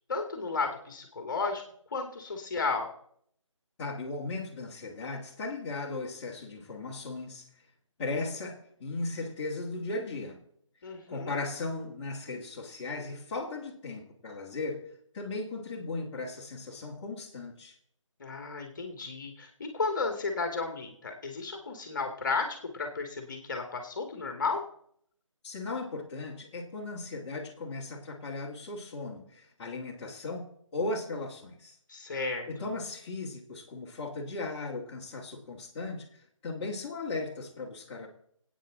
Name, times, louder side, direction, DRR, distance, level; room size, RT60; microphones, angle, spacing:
voice 1, 0.1-1.6 1.9-2.9 10.8-11.4 18.2-24.6 31.9-32.5, left 4 dB, 35° left, 4 dB, 2.1 m, -33 dB
voice 2, 3.8-7.5 8.0-10.4 11.1-17.8 25.4-30.4 30.7-31.7 32.5-36.1 36.4-38.1, left 3 dB, 15° left, -5 dB, 2.3 m, -37 dB
25.0 x 8.9 x 3.8 m, 0.68 s
figure-of-eight pair, 160°, 17 cm